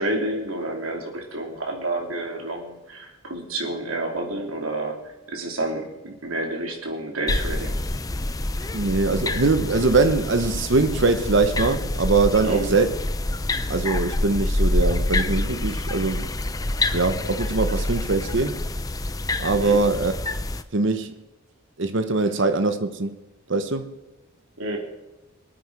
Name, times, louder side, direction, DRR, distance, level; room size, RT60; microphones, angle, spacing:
voice 1, 0.0-5.0 5.3-7.7 12.4-12.7 19.6-19.8 24.6-24.8, right 1 dB, 80° right, 3.1 m, -29 dB
sound 1, 7.3-20.6, left 2 dB, 15° left, 0.6 m, -27 dB
voice 2, 8.7-13.0 13.7-16.3 16.9-18.6 19.4-20.1 20.7-21.2 21.8-23.2 23.5-24.0, right 3 dB, 60° right, 0.9 m, -22 dB
24.5 x 9.0 x 4.8 m
head